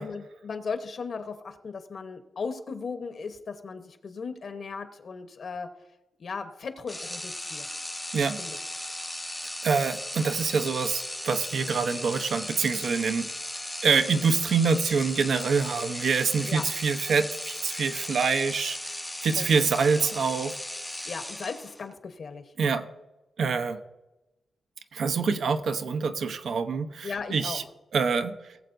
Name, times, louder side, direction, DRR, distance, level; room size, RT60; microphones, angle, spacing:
voice 1, 0.0-5.7 6.2-7.7 8.4-8.6 16.4-16.6 19.4-19.7 19.9-20.1 21.1-22.4 27.0-27.6, left 5 dB, 55° left, 7 dB, 1.1 m, -37 dB
sound 1, 6.9-21.9, left 1 dB, 10° left, 0.6 m, -37 dB
voice 2, 9.6-13.3 13.8-20.6 22.6-22.9 23.4-23.8 24.9-27.6 27.9-28.4, right 5 dB, 65° right, 8 dB, 0.8 m, -26 dB
19.5 x 7.6 x 2.6 m, 0.99 s
wide cardioid pair, 125°, 0 cm